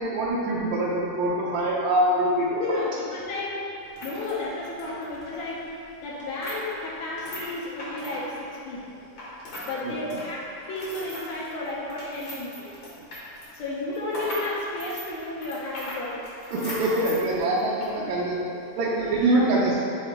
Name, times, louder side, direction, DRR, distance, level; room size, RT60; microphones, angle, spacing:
voice 1, 0.0-2.8 9.8-10.1 16.5-18.4 18.8-19.8, right 1 dB, 75° right, -4 dB, 1.8 m, -24 dB
voice 2, 2.4-3.6 4.0-5.7 6.0-9.1 9.6-10.4 10.7-12.7 13.5-16.2 16.8-16.9 18.0-18.1 19.1-19.5, left 2 dB, 75° left, -5 dB, 2.0 m, -32 dB
sound 1, 3.8-9.7 10.0-18.0 18.3-18.4 19.0-19.3, equal, 55° left, 1.4 m, -40 dB
7.8 x 2.8 x 4.3 m, 2.7 s
omnidirectional pair, 3.6 m